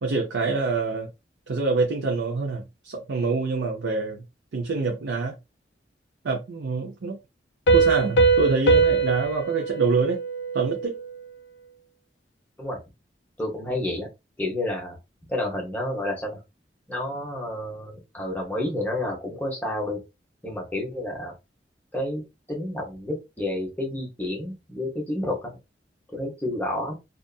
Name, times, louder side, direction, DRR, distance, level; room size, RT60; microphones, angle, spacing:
voice 1, 0.0-1.1 1.5-4.2 4.5-5.4 6.2-7.2 7.7-10.2 10.5-11.0, right 3 dB, 85° right, 0.5 m, -26 dB
Piano, 7.7-11.1, right 4 dB, 90° left, 0.5 m, -22 dB
voice 2, 13.4-14.1 14.4-15.0 15.2-16.4 16.9-20.0 20.4-21.3 21.9-25.5 26.1-26.9, left 1 dB, 10° left, 0.9 m, -30 dB
2.6 x 2.4 x 2.3 m
head